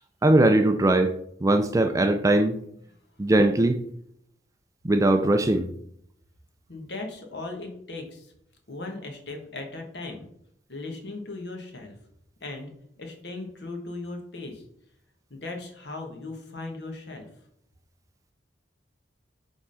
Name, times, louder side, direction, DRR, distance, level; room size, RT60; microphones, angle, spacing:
voice 1, 0.2-1.1 1.4-2.6 3.2-3.8 4.8-5.7, right 1 dB, 20° right, 0.4 m, -20 dB
voice 2, 6.7-8.3 8.7-10.3 10.7-12.0 12.4-12.7 13.0-14.6 15.3-17.3, left 2 dB, 65° left, 1.4 m, -37 dB
5.3 x 3.7 x 5.5 m
head